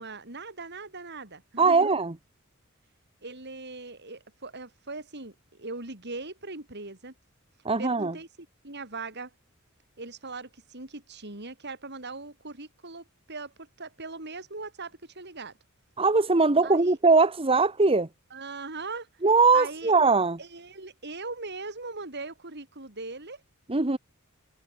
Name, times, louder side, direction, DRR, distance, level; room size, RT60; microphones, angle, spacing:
voice 1, 0.0-1.9 3.2-7.1 7.8-9.3 10.0-15.5 16.6-17.0 18.3-19.1 19.5-19.9 20.4-23.4, right 3 dB, 55° right, 5.4 m, -40 dB
voice 2, 1.6-2.1 7.6-8.1 16.0-18.1 19.2-20.4 23.7-24.0, right 4 dB, 25° right, 1.2 m, -21 dB
head